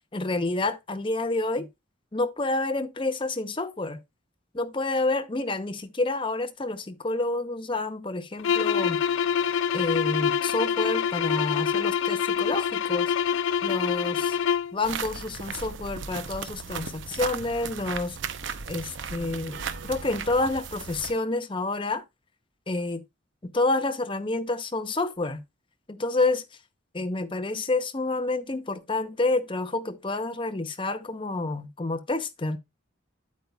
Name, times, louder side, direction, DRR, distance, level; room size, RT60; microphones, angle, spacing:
voice 1, 0.1-1.7 2.1-4.0 4.5-9.0 9.7-13.1 13.6-14.4 14.7-18.2 18.7-22.0 22.7-23.0 23.4-25.4 25.9-26.4 26.9-32.6, left 2 dB, 25° left, 0.7 m, -28 dB
sound 1, 8.4-14.8, left 7 dB, 80° left, 0.4 m, -25 dB
sound 2, 14.8-21.1, right 6 dB, 70° right, 0.7 m, -36 dB
9.4 x 8.4 x 2.3 m
head